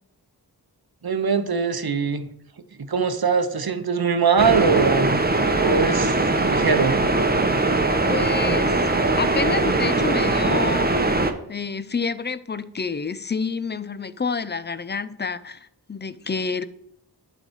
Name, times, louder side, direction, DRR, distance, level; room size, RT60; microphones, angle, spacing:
voice 1, 1.0-2.3 2.8-5.2 5.5-7.0, right 5 dB, 65° right, 0.9 m, -22 dB
sound 1, 4.4-11.3, right 2 dB, 25° right, 0.9 m, -21 dB
voice 2, 8.0-11.2 11.5-16.6, left 4 dB, 25° left, 0.5 m, -29 dB
11.5 x 4.0 x 4.6 m
wide cardioid pair, 45°, 41 cm